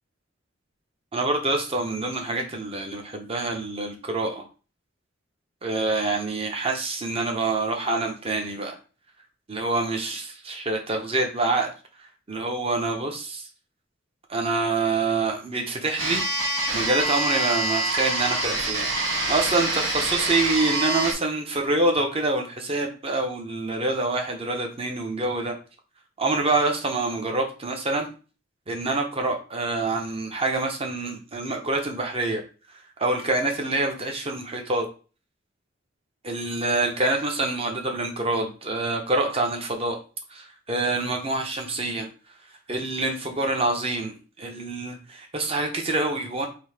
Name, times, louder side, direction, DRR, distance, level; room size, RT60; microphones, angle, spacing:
voice 1, 1.1-4.5 5.6-8.7 9.5-11.7 12.3-13.4 14.3-16.2 16.7-18.9 19.3-25.5 26.2-28.1 28.7-32.4 33.0-34.8 36.2-40.0 40.3-42.1 42.7-46.5, right 2 dB, 30° right, 3 dB, 0.9 m, -26 dB
sound 1, 16.0-21.1, right 2 dB, 75° right, 1.5 m, -26 dB
3.8 x 2.8 x 4.8 m, 0.35 s
head